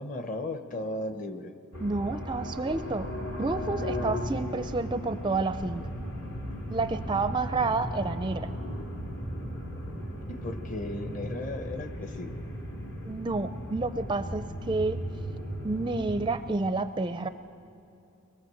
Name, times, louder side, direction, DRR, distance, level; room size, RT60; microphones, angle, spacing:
voice 1, 0.0-1.5 10.3-12.3, left 1 dB, 35° left, 8 dB, 1.1 m, -36 dB
sound 1, 1.7-16.3, equal, 70° left, 3.5 m, -36 dB
voice 2, 1.8-3.1 3.4-5.8 6.7-8.5 13.0-15.0 15.6-17.3, right 3 dB, 20° right, 10 dB, 0.4 m, -29 dB
24.0 x 21.0 x 7.8 m, 2.6 s
head